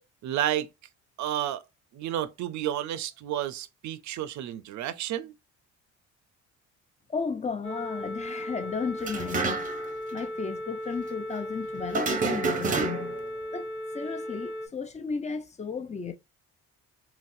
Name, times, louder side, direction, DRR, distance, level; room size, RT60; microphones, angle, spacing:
voice 1, 0.2-0.7 1.2-1.6 1.9-5.3, right 12 dB, 70° right, 0.5 m, -31 dB
voice 2, 7.1-9.7 10.1-13.2 13.5-16.1, left 5 dB, 25° left, 0.5 m, -34 dB
sound 1, 7.6-14.7, equal, 40° left, 1.1 m, -36 dB
sound 2, 9.0-9.9 10.2-10.3 11.9-13.3, right 3 dB, 25° right, 0.6 m, -29 dB
3.9 x 2.0 x 2.6 m
cardioid pair, 90°, 30 cm